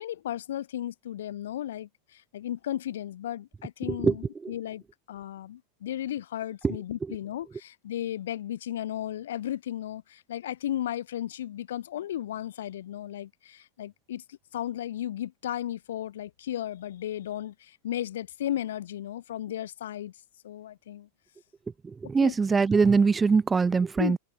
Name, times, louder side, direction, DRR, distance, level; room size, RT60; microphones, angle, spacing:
voice 1, 0.0-4.8 5.1-20.1 20.4-21.1 22.2-22.4 24.0-24.2, left 12 dB, 60° left, 0.4 m, -35 dB
voice 2, 3.8-4.2 4.4-4.5 6.6-6.8 7.1-7.2 21.8-24.2, right 5 dB, 15° right, 0.4 m, -23 dB
open air
figure-of-eight pair, 90°, 0 cm